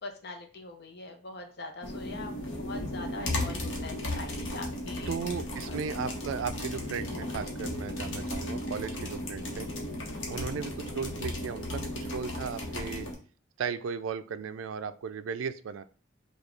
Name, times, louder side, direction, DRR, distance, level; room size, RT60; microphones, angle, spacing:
voice 1, 0.0-2.3 2.6-5.2 5.7-6.1 10.1-10.4, left 2 dB, 60° left, 5 dB, 0.7 m, -43 dB
sound 1, 1.8-13.1, left 1 dB, 75° left, 1.0 m, -35 dB
voice 2, 5.1-9.7 10.3-13.1 13.6-15.8, right 6 dB, 90° right, 12 dB, 0.3 m, -36 dB
4.9 x 2.3 x 3.2 m, 0.41 s
head